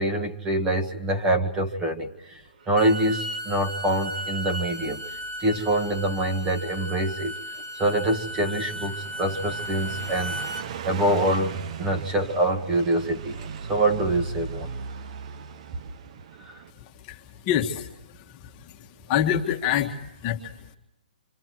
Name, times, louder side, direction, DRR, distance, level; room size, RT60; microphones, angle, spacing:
voice 1, 0.0-5.0 5.4-7.4 7.7-10.4 10.8-14.7 16.4-16.6, right 1 dB, 15° right, 4 dB, 1.8 m, -25 dB
Bowed string instrument, 2.6-10.7, equal, 65° right, 1.8 m, -35 dB
Car passing by, 8.3-16.7, right 6 dB, 45° right, 1.0 m, -37 dB
voice 2, 16.7-20.8, left 10 dB, 25° left, 2 dB, 1.7 m, -28 dB
27.0 x 26.5 x 4.7 m, 0.87 s
hypercardioid pair, 155°, 5 cm